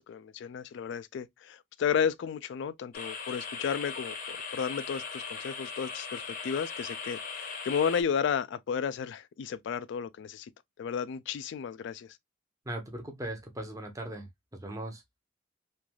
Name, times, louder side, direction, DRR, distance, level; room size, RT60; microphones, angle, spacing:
voice 1, 0.0-10.5 10.8-12.1, left 7 dB, 65° left, 0.3 m, -33 dB
sound 1, 2.9-8.0, left 5 dB, 45° left, 0.7 m, -39 dB
voice 2, 12.6-15.0, right 1 dB, 20° right, 0.8 m, -39 dB
3.2 x 2.5 x 2.2 m
head